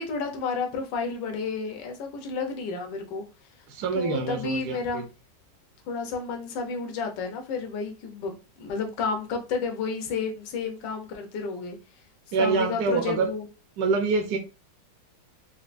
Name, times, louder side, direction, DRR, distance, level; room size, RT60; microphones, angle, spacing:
voice 1, 0.0-3.2 3.9-5.0 5.9-11.8 12.3-13.5, left 5 dB, 70° left, 1.4 m, -31 dB
voice 2, 3.7-5.0 12.3-13.3 13.8-14.4, right 4 dB, 70° right, 1.0 m, -26 dB
4.5 x 2.3 x 2.5 m
omnidirectional pair, 2.0 m